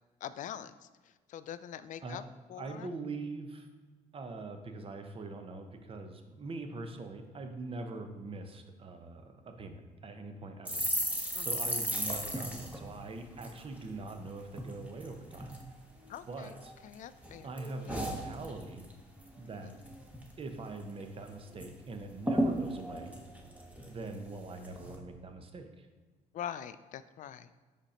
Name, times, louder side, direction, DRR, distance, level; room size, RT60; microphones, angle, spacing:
voice 1, 0.2-0.7 1.3-2.2 2.5-2.9 11.3-11.5 16.1-16.6 16.8-17.5 17.9-18.1 19.6-19.8 26.3-27.5, left 10 dB, 60° left, 14 dB, 0.4 m, -43 dB
voice 2, 2.5-3.7 4.1-10.8 11.4-15.6 16.3-16.7 17.4-18.9 19.4-19.7 20.4-23.1 23.9-25.9, right 3 dB, 40° right, 6 dB, 0.8 m, -43 dB
sound 1, 10.6-14.2 14.5-14.7 15.0-15.6 16.1-16.9 17.2-18.9 19.2-19.4 19.7-20.3 20.6-20.7 21.0-21.7 21.9-22.0 22.2-24.1 24.6-24.9, equal, 10° right, 1.1 m, -35 dB
5.2 x 5.0 x 4.2 m, 1.3 s
cardioid pair, 80°, 15 cm